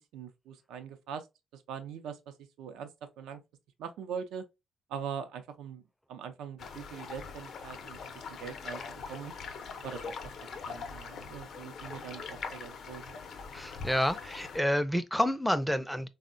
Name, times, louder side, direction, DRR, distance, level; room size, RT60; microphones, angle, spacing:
voice 1, 0.1-1.3 1.5-3.4 3.8-4.4 4.9-5.8 6.1-8.0 8.4-9.3 9.8-10.3 10.7-13.2, right 7 dB, 90° right, 0.5 m, -42 dB
sound 1, 6.6-14.6, left 5 dB, 65° left, 0.5 m, -42 dB
voice 2, 13.5-16.1, equal, ahead, 0.4 m, -29 dB
3.5 x 2.1 x 2.5 m
cardioid pair, 90°, 0 cm